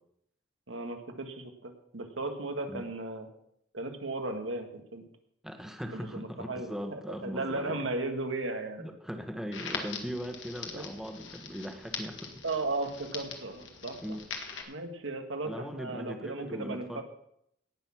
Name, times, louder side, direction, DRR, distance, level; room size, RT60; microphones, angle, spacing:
voice 1, 0.7-3.3 3.7-5.0 5.9-8.8 10.7-10.8 12.4-14.0 14.7-17.0, right 2 dB, 90° right, 5 dB, 1.7 m, -36 dB
voice 2, 5.4-7.8 8.8-12.4 14.0-14.2 15.4-17.0, equal, ahead, 5 dB, 1.2 m, -39 dB
Crackle, 9.5-14.6, left 5 dB, 70° left, 1.8 m, -42 dB
17.5 x 6.4 x 5.9 m, 0.74 s
head